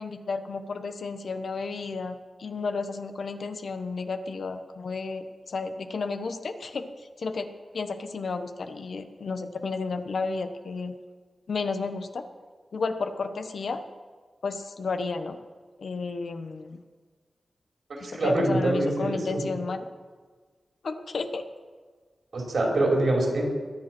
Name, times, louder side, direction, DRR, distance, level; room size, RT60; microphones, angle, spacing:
voice 1, 0.0-6.9 7.2-10.9 11.5-12.2 12.7-13.8 14.4-15.4 15.8-16.8 18.0-19.8 20.8-21.4, left 4 dB, 75° left, 8 dB, 1.0 m, -32 dB
voice 2, 17.9-19.4 22.3-23.4, right 1 dB, 75° right, 0 dB, 4.4 m, -25 dB
21.5 x 7.8 x 6.1 m, 1.5 s
cardioid pair, 60°, 0 cm